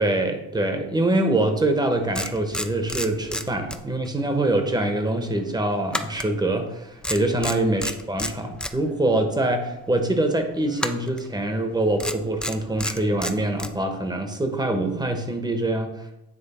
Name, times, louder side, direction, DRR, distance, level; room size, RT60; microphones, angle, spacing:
voice 1, 0.0-15.9, right 1 dB, 15° right, 5 dB, 1.0 m, -24 dB
sound 1, 1.6-1.7 2.1-4.2 4.4-4.7 5.9-6.8 7.0-8.7 10.8-11.3 12.0-13.7, left 1 dB, 5° left, 0.4 m, -30 dB
9.1 x 3.1 x 4.2 m, 0.94 s
cardioid pair, 90°, 30 cm